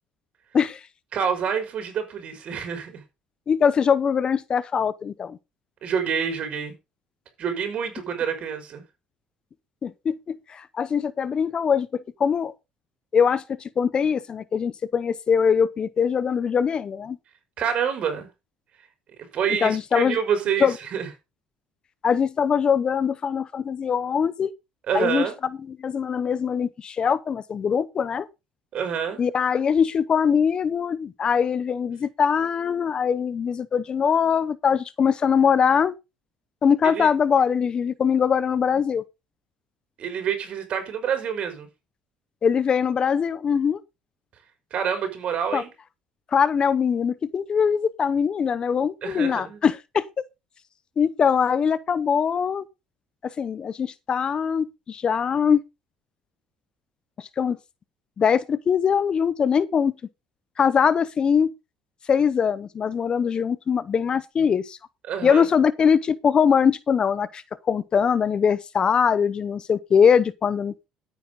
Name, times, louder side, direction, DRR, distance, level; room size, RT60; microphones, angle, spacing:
voice 1, 1.1-3.0 5.8-6.7 7.4-8.8 17.6-18.3 19.3-21.1 24.9-25.4 28.7-29.2 36.8-37.1 40.0-41.7 44.7-45.7 49.0-49.6 65.1-65.5, right 7 dB, 50° right, 5.9 m, -27 dB
voice 2, 3.5-5.4 9.8-11.9 12.2-12.5 13.1-13.4 13.8-17.2 19.6-20.2 20.6-20.7 22.0-24.5 24.9-25.3 25.7-28.3 29.2-35.9 36.6-39.0 42.4-43.8 45.5-45.6 46.3-50.0 51.0-52.6 53.4-55.6 57.2-57.6 58.2-59.9 60.6-61.5 62.1-64.8 65.2-70.7, left 7 dB, 35° left, 0.8 m, -22 dB
13.5 x 9.1 x 3.9 m
cardioid pair, 110°, 3 cm